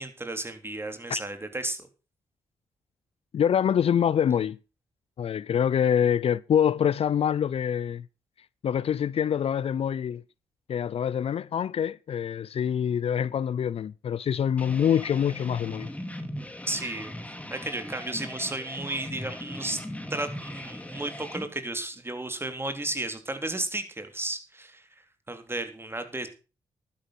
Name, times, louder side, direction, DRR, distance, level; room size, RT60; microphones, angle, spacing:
voice 1, 0.0-1.9 16.7-17.2 17.5-19.8 20.1-26.3, right 2 dB, 20° right, 3.5 m, -33 dB
voice 2, 3.3-4.6 5.2-8.0 8.6-10.2 10.7-15.9, left 8 dB, 60° left, 0.5 m, -25 dB
sound 1, 14.6-21.5, left 1 dB, 10° left, 2.9 m, -39 dB
11.5 x 10.0 x 5.8 m
supercardioid pair, 50°, 11 cm